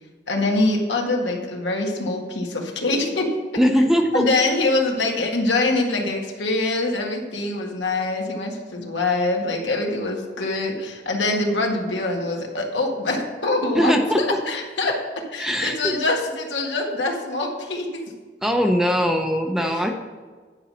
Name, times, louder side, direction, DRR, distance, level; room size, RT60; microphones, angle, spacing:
voice 1, 0.3-3.3 4.1-18.0 19.6-19.9, left 2 dB, 85° left, 1 dB, 1.8 m, -24 dB
voice 2, 3.6-4.2 13.7-14.2 15.4-16.0 18.4-19.9, equal, ahead, 4 dB, 0.7 m, -20 dB
10.5 x 5.4 x 6.4 m, 1.4 s
head